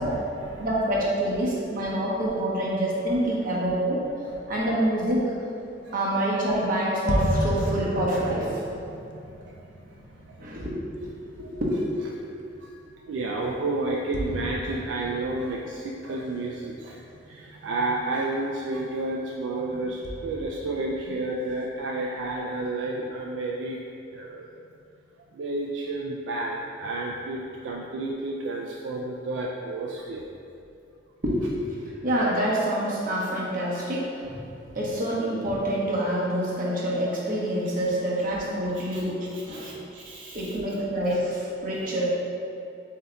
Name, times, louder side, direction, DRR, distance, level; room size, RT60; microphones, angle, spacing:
voice 1, 0.0-0.7 4.2-4.5 5.8-6.0 8.9-9.0 9.4-9.6 10.3-10.4 11.4-11.5 12.6-12.8 13.1-23.8 24.1-24.4 25.3-30.3 38.7-39.0 39.3-40.6, right 2 dB, 70° right, -2 dB, 0.3 m, -31 dB
voice 2, 0.6-4.1 4.5-5.3 5.9-8.6 10.4-11.1 11.4-11.7 31.2-34.4 34.7-39.8 40.3-42.2, right 1 dB, 45° right, -5 dB, 0.9 m, -26 dB
sound 1, 7.1-11.8 12.4-12.5 14.1-16.4 17.1-17.2 20.0-21.5, equal, 65° left, 0.4 m, -32 dB
7.7 x 2.8 x 2.2 m, 2.7 s
head